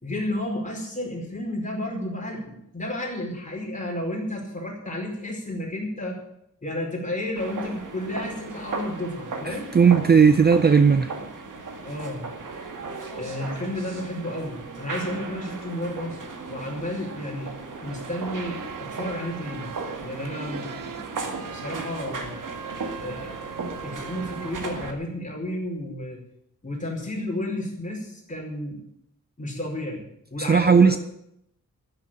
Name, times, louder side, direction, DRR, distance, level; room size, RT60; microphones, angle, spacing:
voice 1, 0.0-6.2 6.6-10.1 11.8-12.3 13.1-16.2 16.5-17.5 17.8-19.7 20.0-22.4 23.0-23.5 23.8-26.2 26.6-28.8 29.4-30.0 30.3-31.0, left 1 dB, 25° left, -2 dB, 4.9 m, -32 dB
sound 1, 7.4-24.9, right 3 dB, 70° right, 2.1 m, -36 dB
voice 2, 9.5-11.1 30.5-31.0, right 6 dB, 30° right, 10 dB, 0.5 m, -16 dB
sound 2, 17.8-24.5, right 8 dB, 90° right, 0.8 m, -41 dB
14.0 x 7.9 x 8.9 m, 0.76 s
wide cardioid pair, 170°, 32 cm